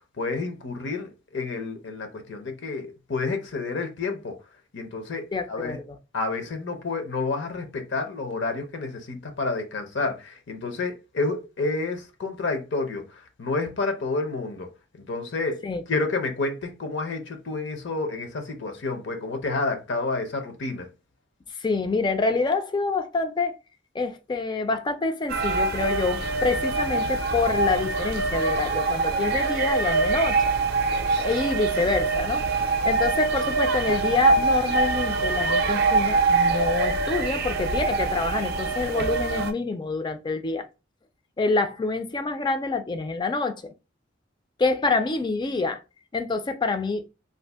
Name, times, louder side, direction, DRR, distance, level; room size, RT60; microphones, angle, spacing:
voice 1, 0.2-4.3 4.7-5.8 6.1-14.7 15.0-15.6 15.9-20.9, left 3 dB, 65° left, 0.7 m, -29 dB
voice 2, 5.3-6.0 15.6-15.8 21.6-23.5 23.9-30.4 31.2-32.4 32.8-40.7 41.4-43.7 44.6-45.8 46.1-47.1, left 3 dB, 25° left, 0.3 m, -26 dB
sound 1, 25.3-39.5, right 3 dB, 55° right, 0.5 m, -24 dB
2.6 x 2.4 x 3.4 m
head